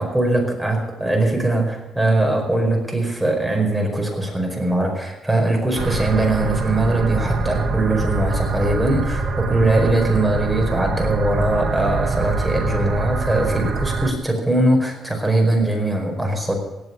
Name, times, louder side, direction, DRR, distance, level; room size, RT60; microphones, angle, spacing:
voice 1, 0.0-16.5, right 2 dB, 10° right, 2 dB, 5.0 m, -21 dB
sound 1, 5.7-14.1, right 3 dB, 65° right, 2.5 m, -24 dB
18.0 x 8.1 x 8.4 m, 1.1 s
cardioid pair, 90°, 0 cm